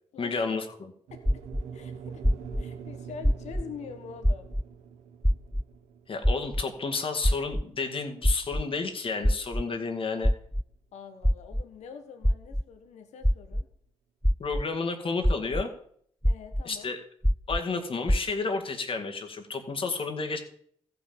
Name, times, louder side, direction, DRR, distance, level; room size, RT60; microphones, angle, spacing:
voice 1, 0.2-0.9 6.1-10.3 14.4-15.7 16.6-17.0 17.5-20.4, left 4 dB, 50° left, 5 dB, 2.0 m, -31 dB
sound 1, 1.1-9.3, right 7 dB, 80° right, 1.2 m, -45 dB
sound 2, 1.3-1.6 2.2-2.6 3.2-3.6 4.2-4.6 5.2-5.6 6.2-6.6 7.2-7.6 8.2-8.6 9.2-9.6 10.2-10.6 11.2-11.6 12.2-12.6 13.2-13.6 14.2-14.6 15.2-15.6 16.2-16.6 17.2-17.6 18.1-18.2, equal, ahead, 0.4 m, -23 dB
voice 2, 1.7-2.2 2.6-4.5 10.9-13.7 16.2-16.9, left 6 dB, 75° left, 6 dB, 1.4 m, -44 dB
14.5 x 6.1 x 7.1 m, 0.65 s
supercardioid pair, 55°, 12 cm